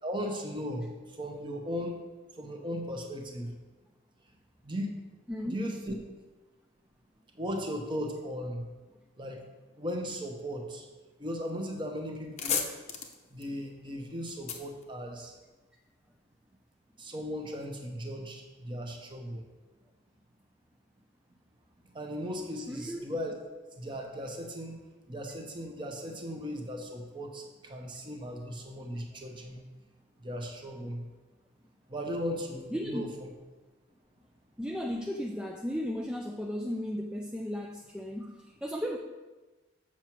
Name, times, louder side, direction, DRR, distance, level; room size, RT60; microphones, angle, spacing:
voice 1, 0.0-2.0 2.3-3.5 4.6-4.9 5.5-6.0 7.3-8.7 9.2-9.4 9.8-10.9 11.2-12.6 13.3-15.3 17.0-19.5 21.8-23.3 23.8-24.8 25.1-29.6 30.2-31.0 31.9-33.1, equal, 25° right, 2 dB, 0.9 m, -37 dB
sound 1, 11.6-11.8 12.1-15.7, left 6 dB, 35° left, 0.7 m, -36 dB
voice 2, 22.7-23.1 32.7-33.1 34.6-39.0, equal, 5° right, 1 dB, 0.3 m, -35 dB
7.4 x 5.9 x 4.5 m, 1.2 s
head